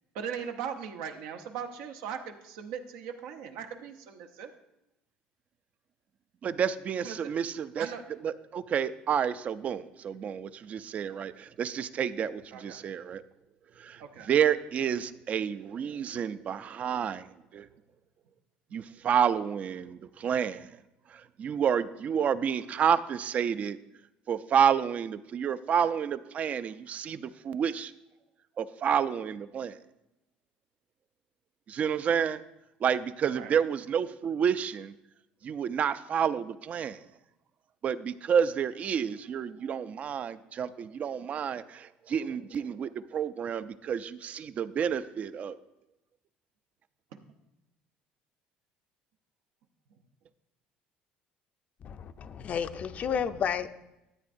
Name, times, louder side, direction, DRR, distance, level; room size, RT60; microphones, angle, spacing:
voice 1, 0.1-4.5 7.0-7.3 7.8-8.0 12.5-12.8 14.0-14.3 33.3-33.5 47.1-47.2, right 7 dB, 85° right, 0.8 m, -39 dB
voice 2, 6.4-7.9 8.2-13.2 13.8-17.3 17.5-17.7 18.7-20.8 21.1-23.8 24.3-27.9 28.6-29.8 31.7-32.4 32.8-34.9 35.4-37.0 37.8-45.6, right 8 dB, 45° right, 0.4 m, -29 dB
voice 3, 51.8-53.7, left 7 dB, 45° left, 0.5 m, -31 dB
13.0 x 8.2 x 2.6 m
cardioid pair, 105°, 3 cm